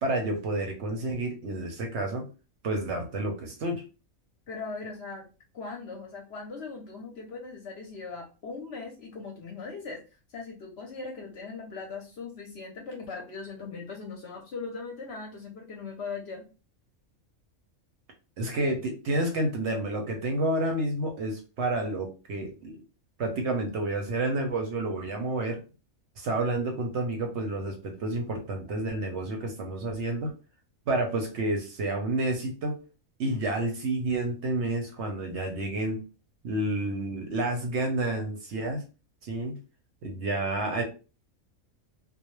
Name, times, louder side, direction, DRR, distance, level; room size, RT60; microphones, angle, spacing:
voice 1, 0.0-2.2 2.6-3.8 18.4-22.8 23.2-25.6 26.2-30.3 30.9-32.8 33.2-36.0 36.4-38.8 39.2-39.5 40.0-40.8, right 2 dB, 65° right, 2 dB, 0.8 m, -29 dB
voice 2, 4.5-5.3 5.5-10.0 10.3-16.4, left 4 dB, 60° left, 1 dB, 0.7 m, -39 dB
2.3 x 2.0 x 3.0 m, 0.33 s
omnidirectional pair, 1.4 m